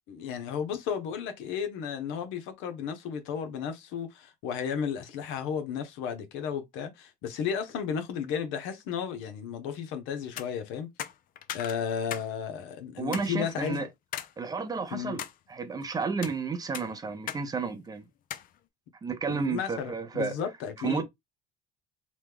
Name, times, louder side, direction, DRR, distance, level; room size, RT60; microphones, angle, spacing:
voice 1, 0.1-10.9 11.5-13.9 14.9-15.2 19.3-21.0, left 7 dB, 80° left, 0.8 m, -33 dB
sound 1, 10.2-10.5 11.0-12.3 12.6-12.7 13.1-13.3 14.1-14.3 14.8-15.4 16.0-16.4 16.7-17.4 17.7-17.8 18.3-18.5, left 11 dB, 45° left, 0.4 m, -38 dB
voice 2, 13.0-13.9 14.4-15.2 15.5-18.1 19.0-20.3 20.8-21.0, right 4 dB, 20° right, 0.4 m, -32 dB
3.0 x 2.2 x 3.4 m
cardioid pair, 140°, 20 cm